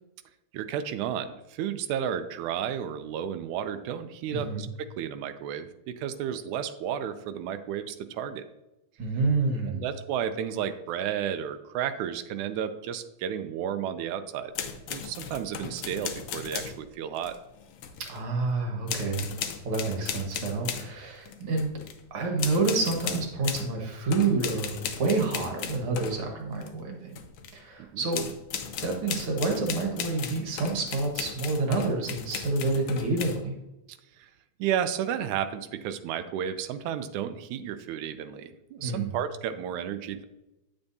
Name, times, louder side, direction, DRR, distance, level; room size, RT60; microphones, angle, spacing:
voice 1, 0.5-8.4 9.7-14.5 14.9-17.4 27.8-28.0 33.9-34.3 34.6-40.2, right 9 dB, 85° right, 10 dB, 2.0 m, -32 dB
voice 2, 4.3-4.7 9.0-9.8 18.0-19.3 19.6-21.7 22.1-27.2 27.5-28.3 28.8-33.5 38.8-39.2, right 3 dB, 55° right, 1 dB, 2.0 m, -28 dB
sound 1, 14.5-16.8 17.2-18.2 18.9-20.9 21.3-22.0 22.4-23.7 24.1-26.7 27.1-27.6 28.1-33.4, left 7 dB, 75° left, 1.3 m, -36 dB
10.0 x 6.9 x 2.7 m, 0.95 s
omnidirectional pair, 3.4 m